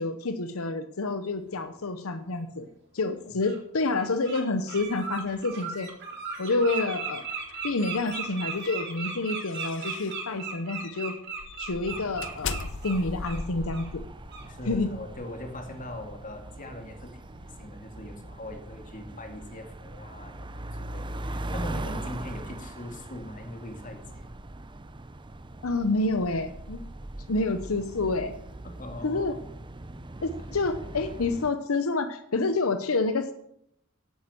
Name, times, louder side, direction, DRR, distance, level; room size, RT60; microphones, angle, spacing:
voice 1, 0.0-2.7 2.9-5.9 6.4-7.2 7.6-11.2 11.6-14.0 14.6-14.9 25.6-26.8 27.3-28.3 29.0-29.3 30.2-33.3, left 3 dB, 85° left, 9 dB, 0.9 m, -28 dB
Bird, 2.6-2.7 3.4-3.6 4.0-4.4 4.7-13.4 13.7-13.9 14.3-14.5, right 5 dB, 55° right, 3.4 m, -36 dB
sound 1, 7.3-10.2 10.7-11.0 11.4-15.6, left 5 dB, 60° left, 0.7 m, -40 dB
sound 2, 11.9-31.5, right 1 dB, 25° right, 0.7 m, -41 dB
voice 2, 14.4-24.3 28.6-29.4, left 1 dB, 40° left, 5 dB, 2.4 m, -41 dB
11.5 x 8.9 x 7.7 m, 0.73 s
head